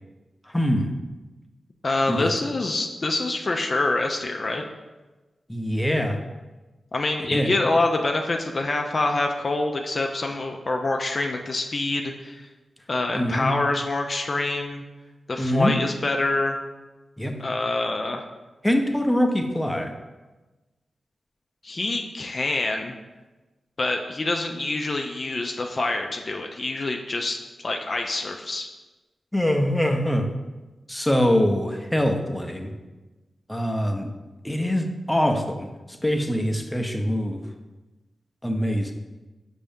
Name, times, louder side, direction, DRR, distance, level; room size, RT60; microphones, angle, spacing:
voice 1, 0.5-0.9 2.1-2.3 5.5-6.2 7.3-7.5 13.1-13.6 15.4-15.7 17.2-17.4 18.6-19.9 29.3-30.3 30.9-32.7 33.5-34.1 34.4-37.4 38.4-38.9, equal, 10° left, 4 dB, 0.6 m, -23 dB
voice 2, 1.8-4.6 6.9-12.5 12.9-14.8 15.3-16.6 17.4-18.2 21.6-22.9 23.8-28.7, left 2 dB, 50° left, 3 dB, 0.4 m, -26 dB
5.3 x 2.6 x 3.5 m, 1.2 s
cardioid pair, 40°, 0 cm